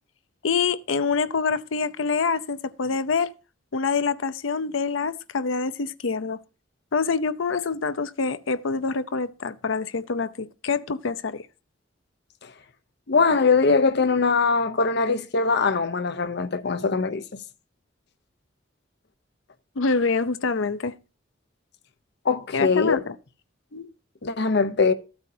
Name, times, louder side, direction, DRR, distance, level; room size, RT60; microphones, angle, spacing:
voice 1, 0.4-3.3 3.7-6.4 6.9-11.5 19.8-20.9 22.5-23.1, left 4 dB, 85° left, 0.6 m, -26 dB
voice 2, 13.1-17.4 22.2-23.0 23.7-23.9 24.2-24.9, left 4 dB, 60° left, 0.9 m, -22 dB
14.0 x 8.8 x 2.8 m
head